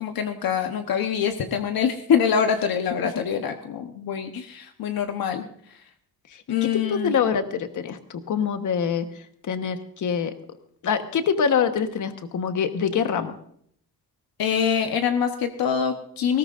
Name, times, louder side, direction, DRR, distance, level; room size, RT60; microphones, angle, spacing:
voice 1, 0.0-5.5 6.5-7.1 14.4-16.4, left 7 dB, 70° left, 6 dB, 1.1 m, -24 dB
voice 2, 6.9-9.0 9.4-10.3 10.8-13.3, left 7 dB, 55° left, 8 dB, 1.3 m, -25 dB
20.0 x 17.0 x 2.6 m, 0.64 s
wide cardioid pair, 160°, 37 cm